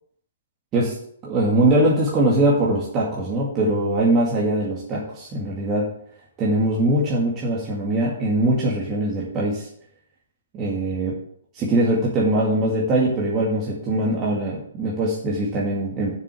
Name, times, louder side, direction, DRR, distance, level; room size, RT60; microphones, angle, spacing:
voice 1, 1.2-5.9 6.4-9.7 10.5-11.1 11.5-16.1, right 1 dB, 25° right, -4 dB, 2.1 m, -21 dB
7.0 x 6.8 x 7.6 m, 0.68 s
hypercardioid pair, 135°, 0 cm